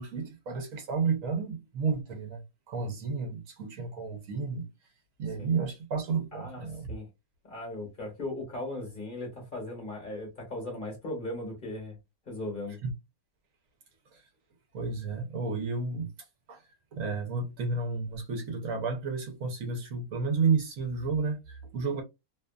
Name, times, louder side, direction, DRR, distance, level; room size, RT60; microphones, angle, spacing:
voice 1, 0.0-4.6 5.2-6.9 12.8-12.9 14.1-14.3 14.7-22.0, right 5 dB, 65° right, 1.0 m, -32 dB
voice 2, 6.3-6.6 6.9-7.1 7.4-12.0 12.3-12.8, left 2 dB, 40° left, 1.0 m, -37 dB
2.7 x 2.4 x 2.2 m
omnidirectional pair, 1.6 m